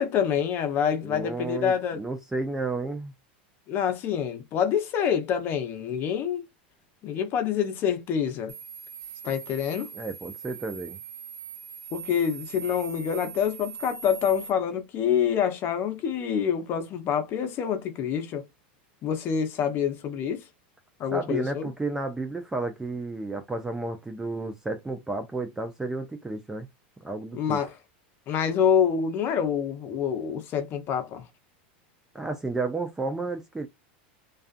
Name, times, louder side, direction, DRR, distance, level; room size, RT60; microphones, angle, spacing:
voice 1, 0.0-2.0 3.7-6.4 7.0-8.5 9.2-9.9 11.9-18.4 19.0-20.4 21.0-21.7 27.3-27.7 28.3-31.2, left 8 dB, 40° left, 0.7 m, -26 dB
voice 2, 1.0-3.1 9.9-11.0 21.1-26.7 27.0-27.6 32.1-33.7, right 3 dB, 10° right, 0.4 m, -32 dB
sound 1, 8.5-14.5, right 6 dB, 70° right, 0.6 m, -41 dB
2.4 x 2.3 x 2.4 m
supercardioid pair, 115°, 6 cm